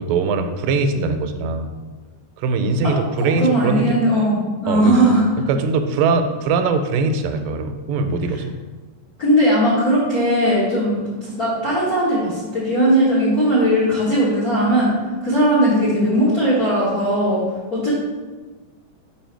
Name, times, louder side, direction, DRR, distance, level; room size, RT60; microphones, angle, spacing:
voice 1, 0.0-1.7 2.4-4.0 4.7-4.9 5.5-8.6, right 4 dB, 85° right, 7 dB, 2.3 m, -21 dB
voice 2, 2.8-5.2 9.2-14.9 15.2-17.4 17.7-17.9, right 1 dB, 55° left, -8 dB, 0.9 m, -18 dB
5.6 x 4.7 x 4.5 m, 1.3 s
omnidirectional pair, 3.9 m